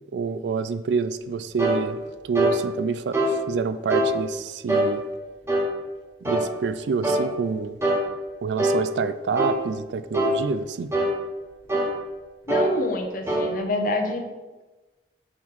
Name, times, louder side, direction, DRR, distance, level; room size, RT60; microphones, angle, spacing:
voice 1, 0.1-5.0 6.2-7.8 8.4-10.9, right 5 dB, 75° right, 13 dB, 0.3 m, -27 dB
sound 1, 1.6-1.8 2.4-2.6 3.1-3.4 3.9-4.1 4.7-4.9 5.5-5.7 6.3-6.5 7.0-7.3 7.8-8.1 8.6-8.8 9.4-9.6 10.1-10.4 10.9-11.1 11.7-11.9 12.5-12.7 13.3-13.5, right 1 dB, 15° right, 1.0 m, -22 dB
voice 2, 12.5-14.2, left 2 dB, 50° left, 4 dB, 0.8 m, -27 dB
6.2 x 4.6 x 3.7 m, 1.2 s
head